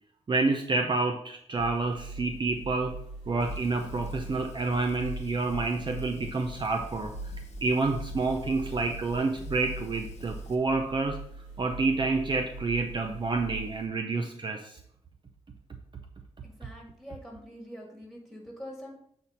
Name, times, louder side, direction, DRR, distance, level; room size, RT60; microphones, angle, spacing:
voice 1, 0.3-2.9 3.3-7.1 7.6-11.2 11.6-14.8, right 3 dB, 45° right, 4 dB, 0.7 m, -28 dB
sound 1, 1.5-13.9, right 3 dB, 70° right, 2.9 m, -42 dB
Fire, 3.4-10.5, left 4 dB, 75° left, 0.9 m, -45 dB
voice 2, 16.4-19.0, equal, ahead, -1 dB, 2.6 m, -44 dB
7.9 x 4.3 x 4.1 m, 0.68 s
cardioid pair, 85°, 12 cm